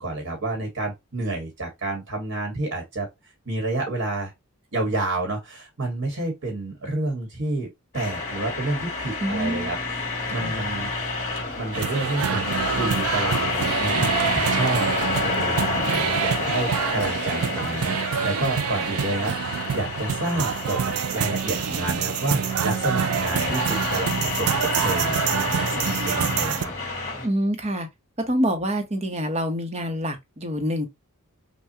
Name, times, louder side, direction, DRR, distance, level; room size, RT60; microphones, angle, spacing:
voice 1, 0.0-3.1 3.4-4.3 4.7-10.0 10.3-10.9 11.6-26.7, right 2 dB, 65° right, 1.4 m, -29 dB
sound 1, 7.9-27.3, left 3 dB, 35° left, 2.3 m, -29 dB
voice 2, 9.2-9.7 10.4-10.5 27.2-27.9 28.3-30.9, equal, 30° right, 0.9 m, -26 dB
sound 2, 11.7-26.7, right 8 dB, 80° right, 0.4 m, -26 dB
5.6 x 2.3 x 2.7 m
head